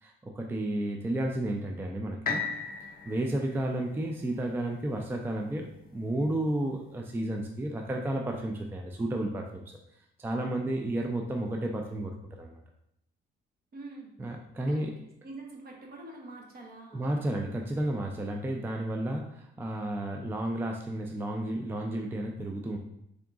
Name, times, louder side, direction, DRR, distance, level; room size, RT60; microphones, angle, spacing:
voice 1, 0.0-2.4 3.1-9.8 10.2-12.1 12.4-12.6 14.2-14.9 16.9-22.8, right 1 dB, 10° right, 2 dB, 0.3 m, -32 dB
sound 1, 2.2-6.2 6.8-6.9, left 5 dB, 45° left, 0.5 m, -38 dB
voice 2, 13.7-14.1 14.6-17.1, right 2 dB, 50° right, 0 dB, 1.0 m, -45 dB
3.8 x 3.5 x 2.4 m, 0.78 s
cardioid pair, 90°, 20 cm